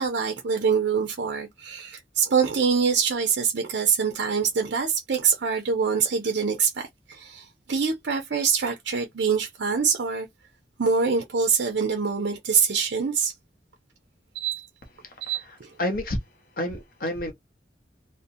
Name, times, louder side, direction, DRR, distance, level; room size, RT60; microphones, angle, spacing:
voice 1, 0.0-10.3 10.8-13.3 14.3-14.7 15.2-15.7, right 6 dB, 70° right, 0.5 m, -25 dB
voice 2, 15.0-16.2 16.6-17.3, left 1 dB, 50° left, 0.6 m, -30 dB
2.6 x 2.0 x 2.6 m
head